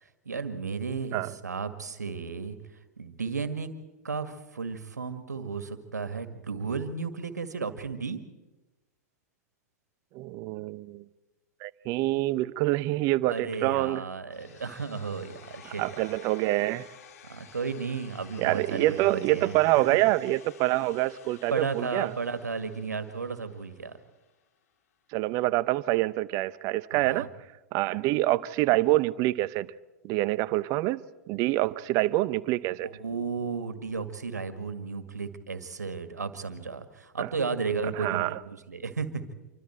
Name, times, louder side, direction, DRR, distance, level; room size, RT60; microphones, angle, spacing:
voice 1, 0.3-2.6 3.0-3.7 4.0-8.2 13.3-15.8 17.3-19.0 19.3-19.6 21.5-24.0 26.9-27.3 32.8-39.2, right 5 dB, 80° right, 2.0 m, -34 dB
voice 2, 10.1-11.0 11.6-14.1 15.7-16.9 18.4-22.1 25.1-27.3 27.7-29.7 30.0-32.9 37.2-37.3 37.9-38.4, right 18 dB, 40° right, 0.8 m, -26 dB
sound 1, 14.3-24.3, left 8 dB, 60° left, 2.2 m, -52 dB
27.0 x 24.5 x 4.5 m
figure-of-eight pair, 100°, 9 cm